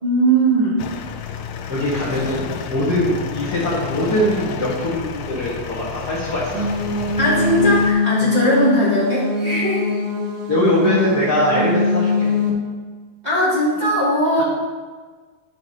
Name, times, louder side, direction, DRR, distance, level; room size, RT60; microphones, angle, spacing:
voice 1, 0.0-0.8 7.2-10.0 13.2-14.4, right 1 dB, 15° right, -11 dB, 1.9 m, -19 dB
sound 1, 0.8-7.9, left 7 dB, 80° left, 2.0 m, -31 dB
voice 2, 1.7-6.7 10.5-12.4, left 1 dB, 50° left, -8 dB, 1.2 m, -21 dB
sound 2, 6.5-12.5, left 3 dB, 70° right, 1.3 m, -22 dB
11.0 x 5.8 x 2.8 m, 1.4 s
omnidirectional pair, 3.9 m